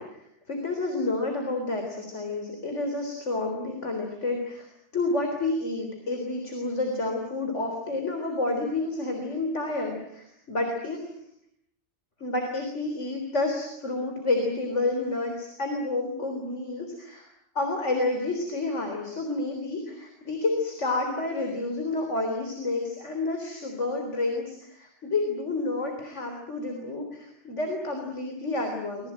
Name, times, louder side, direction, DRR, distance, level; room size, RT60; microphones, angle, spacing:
voice 1, 0.0-4.7 4.9-11.1 12.2-17.3 17.5-29.1, left 2 dB, 85° left, 3 dB, 4.3 m, -29 dB
26.5 x 21.0 x 9.0 m, 0.77 s
omnidirectional pair, 1.2 m